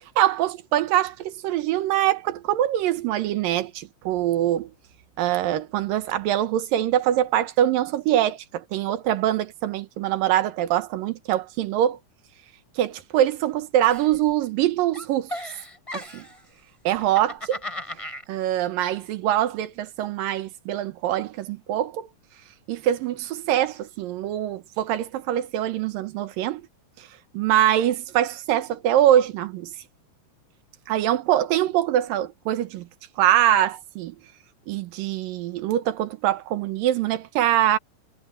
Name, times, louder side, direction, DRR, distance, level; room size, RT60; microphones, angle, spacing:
voice 1, 0.2-4.7 5.2-12.0 12.8-15.4 15.9-16.3 16.8-17.6 17.9-18.0 18.3-22.1 22.7-26.6 27.0-27.1 27.3-29.7 30.9-32.9 33.2-34.2 34.7-37.8, right 12 dB, 85° right, 2.8 m, -23 dB
Giggle, 13.8-14.7 14.9-16.4 17.0-18.2, left 1 dB, 10° left, 7.4 m, -36 dB
omnidirectional pair, 3.9 m